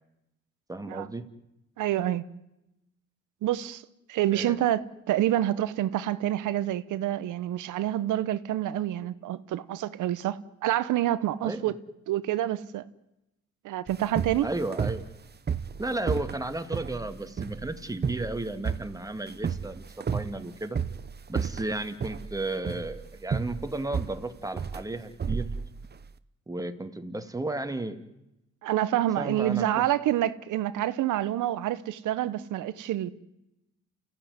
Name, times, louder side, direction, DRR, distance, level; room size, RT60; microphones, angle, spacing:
voice 1, 0.7-1.3 4.3-4.6 11.4-11.7 14.4-15.0 15.8-19.8 20.1-20.8 21.3-25.5 26.5-28.0 29.2-29.8, right 2 dB, 10° right, 2.2 m, -33 dB
voice 2, 1.8-2.2 3.4-3.8 4.1-11.7 12.1-12.8 13.6-14.5 28.6-33.1, right 13 dB, 85° right, 1.2 m, -27 dB
sound 1, 13.9-26.1, right 6 dB, 35° right, 1.0 m, -33 dB
29.0 x 15.5 x 9.6 m
cardioid pair, 90°, 30 cm